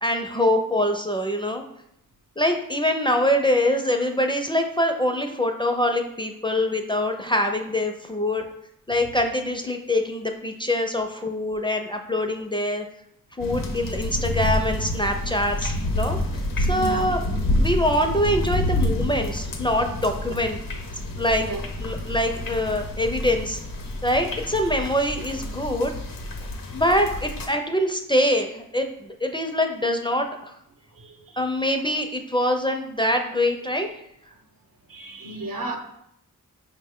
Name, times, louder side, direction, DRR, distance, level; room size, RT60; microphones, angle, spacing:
voice 1, 0.0-1.6 2.4-8.4 8.9-12.8 13.4-16.4 16.7-17.2 17.6-20.6 21.2-21.5 21.8-23.6 24.0-25.9 26.7-30.5 31.4-33.9, left 1 dB, 15° left, 4 dB, 0.4 m, -24 dB
sound 1, 13.4-27.5, left 1 dB, 70° left, 0.8 m, -28 dB
voice 2, 16.7-17.0 21.0-21.6 30.9-31.4 34.9-35.8, right 2 dB, 70° right, 3 dB, 0.8 m, -34 dB
5.3 x 2.2 x 3.6 m, 0.76 s
cardioid pair, 50°, 35 cm